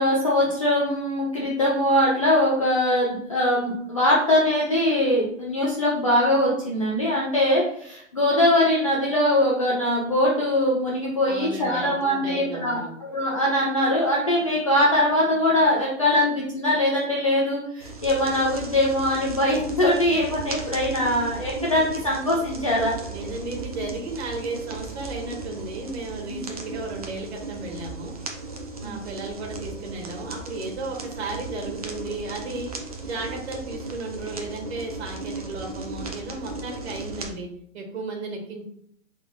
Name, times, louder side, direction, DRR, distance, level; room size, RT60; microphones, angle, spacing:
voice 1, 0.0-22.9 26.3-26.4 28.8-28.9, left 1 dB, 25° left, -5 dB, 0.5 m, -22 dB
voice 2, 11.3-12.9 23.1-28.2 28.8-32.7 33.0-37.5 37.7-38.6, right 2 dB, 50° right, 1 dB, 1.4 m, -34 dB
sound 1, 17.8-37.3, right 3 dB, 30° right, 0.4 m, -36 dB
5.5 x 3.6 x 2.4 m, 0.67 s
hypercardioid pair, 165°, 41 cm